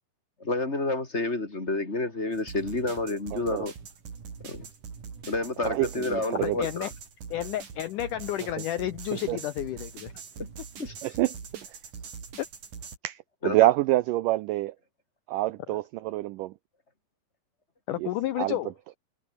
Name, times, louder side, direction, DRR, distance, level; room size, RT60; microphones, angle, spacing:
voice 1, 0.4-3.7 4.4-4.7 5.3-6.9 10.4-10.5 10.8-10.9 13.4-13.6, left 2 dB, 20° left, 2.8 m, -29 dB
sound 1, 2.3-13.0, right 6 dB, 55° right, 5.3 m, -43 dB
voice 2, 3.3-3.6 5.7-6.6 9.3-9.4 11.0-11.4 13.0-14.7 15.3-16.5 18.0-18.1 18.4-18.6, right 17 dB, 85° right, 1.9 m, -26 dB
voice 3, 6.4-6.9 7.3-10.1 12.4-12.5 15.7-15.8 17.9-18.7, left 13 dB, 75° left, 2.0 m, -31 dB
omnidirectional pair, 4.5 m